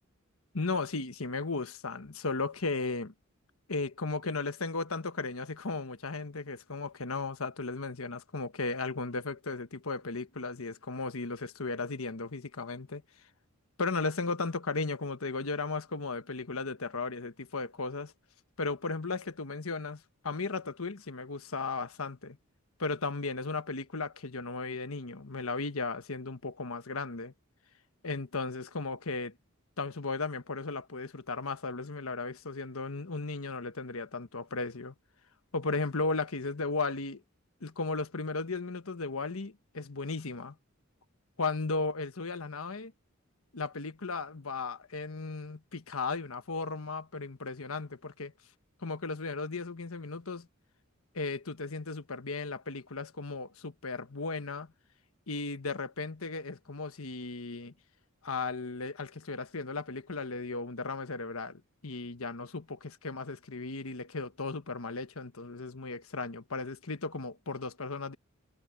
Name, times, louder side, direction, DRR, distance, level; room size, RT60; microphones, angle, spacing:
voice 1, 0.5-3.1 3.7-13.0 13.8-18.1 18.6-22.4 22.8-27.3 28.0-29.3 29.8-34.9 35.5-37.2 37.6-40.5 41.4-42.9 43.5-48.3 48.8-50.5 51.1-54.7 55.3-57.7 58.2-68.2, left 3 dB, 90° left, 1.3 m, -35 dB
head